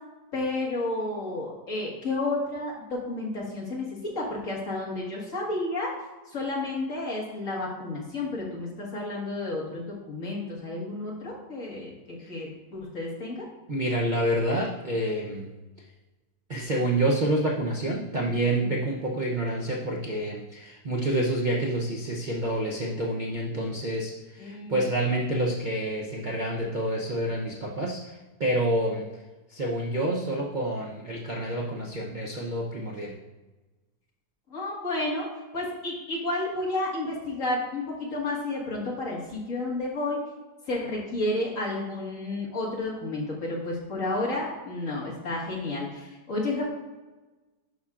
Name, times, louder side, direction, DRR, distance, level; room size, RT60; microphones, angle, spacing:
voice 1, 0.3-5.9 6.3-13.5 18.6-18.7 24.4-24.8 34.5-35.3 35.5-40.2 40.7-46.6, left 2 dB, 45° left, -4 dB, 2.1 m, -31 dB
voice 2, 13.7-15.5 16.5-29.2 29.5-33.2, right 1 dB, 75° right, -3 dB, 0.4 m, -28 dB
11.5 x 5.5 x 2.5 m, 1.2 s
omnidirectional pair, 2.0 m